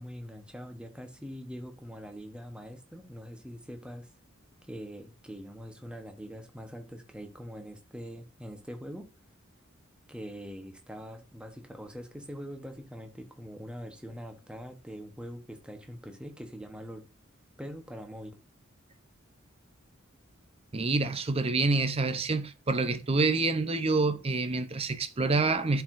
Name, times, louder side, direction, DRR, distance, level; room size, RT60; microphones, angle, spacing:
voice 1, 0.0-4.1 4.6-9.1 10.1-17.0 17.6-18.3, equal, 5° right, 1.0 m, -43 dB
voice 2, 20.7-25.8, right 3 dB, 30° right, 0.6 m, -27 dB
11.0 x 4.6 x 2.6 m
head